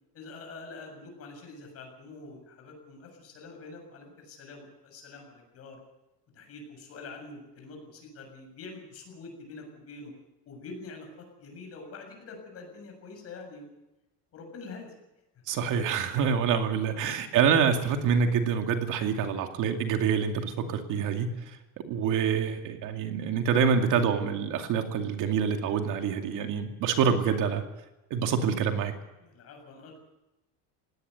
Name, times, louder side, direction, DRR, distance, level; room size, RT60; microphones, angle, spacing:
voice 1, 0.1-5.8 6.3-10.1 10.5-13.7 14.3-14.9 29.2-30.0, left 3 dB, 35° left, 3 dB, 7.3 m, -45 dB
voice 2, 15.5-21.3 21.9-27.6 28.1-28.9, right 7 dB, 50° right, 5 dB, 2.5 m, -26 dB
20.5 x 17.5 x 8.2 m, 0.97 s
cardioid pair, 175°, 39 cm